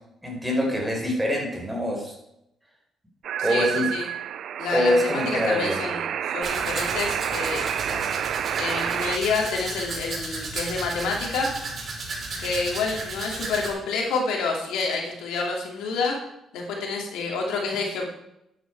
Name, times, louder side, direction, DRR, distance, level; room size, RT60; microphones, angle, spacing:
voice 1, 0.2-2.1 3.4-3.9 4.7-5.8 7.9-8.0, equal, 10° right, -1 dB, 4.9 m, -24 dB
sound 1, 3.2-9.2, right 9 dB, 70° right, 0.5 m, -29 dB
voice 2, 3.5-4.1 4.6-7.7 8.6-11.5 12.4-16.2 16.5-18.0, left 4 dB, 90° left, 0 dB, 2.8 m, -28 dB
Domestic sounds home sounds, 6.4-13.7, right 3 dB, 45° right, 4.8 m, -34 dB
11.5 x 9.3 x 4.8 m, 0.82 s
cardioid pair, 90°, 0 cm